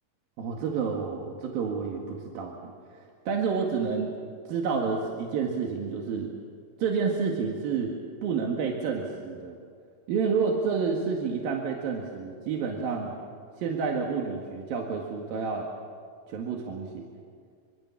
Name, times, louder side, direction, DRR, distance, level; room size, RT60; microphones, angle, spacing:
voice 1, 0.4-4.1 4.5-6.4 6.8-7.9 8.2-9.6 10.1-13.1 13.6-15.7 16.3-17.1, right 5 dB, 80° right, 0 dB, 3.6 m, -29 dB
26.5 x 24.0 x 7.3 m, 2.1 s
omnidirectional pair, 4.1 m